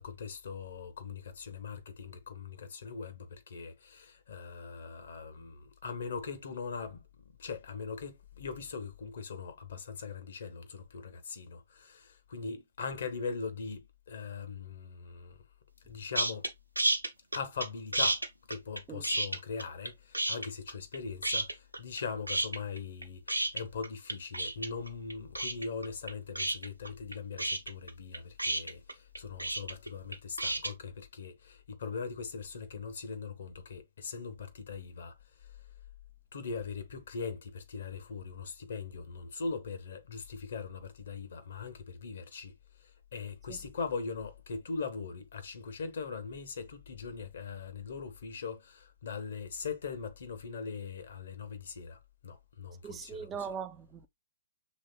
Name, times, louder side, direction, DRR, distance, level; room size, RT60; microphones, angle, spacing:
voice 1, 0.0-7.0 7.4-15.4 15.9-16.5 17.3-35.1 36.3-42.5 42.8-53.5, left 5 dB, 60° left, 1.0 m, -41 dB
sound 1, 16.1-16.5 16.8-17.7 17.9-19.9 20.1-21.0 21.2-22.0 22.3-30.7, right 1 dB, 90° right, 0.8 m, -31 dB
voice 2, 52.8-54.1, right 7 dB, 20° right, 0.4 m, -40 dB
6.2 x 3.2 x 2.3 m
figure-of-eight pair, 120°, 0 cm